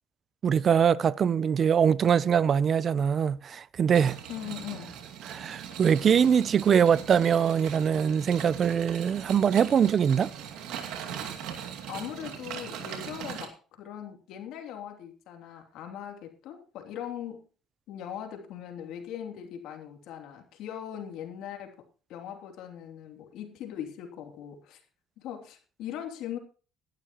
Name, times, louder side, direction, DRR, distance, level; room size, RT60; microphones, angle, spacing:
voice 1, 0.4-4.2 5.3-10.3, right 7 dB, 45° right, 0.6 m, -23 dB
sound 1, 3.9-13.5, right 8 dB, 80° right, 2.5 m, -40 dB
voice 2, 4.3-4.9 11.9-17.4 17.9-21.8 22.1-24.8 25.2-26.4, left 10 dB, 75° left, 3.0 m, -40 dB
18.0 x 11.5 x 3.0 m
cardioid pair, 110°, 0 cm